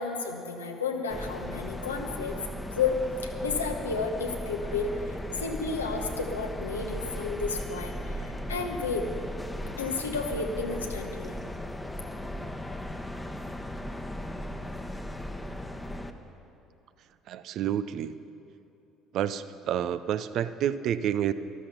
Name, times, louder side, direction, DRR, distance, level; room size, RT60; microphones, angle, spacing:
voice 1, 0.0-2.4 2.7-9.0 9.8-11.3, left 4 dB, 85° left, 3 dB, 1.0 m, -32 dB
sound 1, 1.1-16.1, left 1 dB, 10° left, 1.0 m, -37 dB
voice 2, 17.3-18.1 19.1-21.3, right 10 dB, 55° right, 13 dB, 0.5 m, -29 dB
13.0 x 13.0 x 5.8 m, 2.8 s
hypercardioid pair, 55°, 0 cm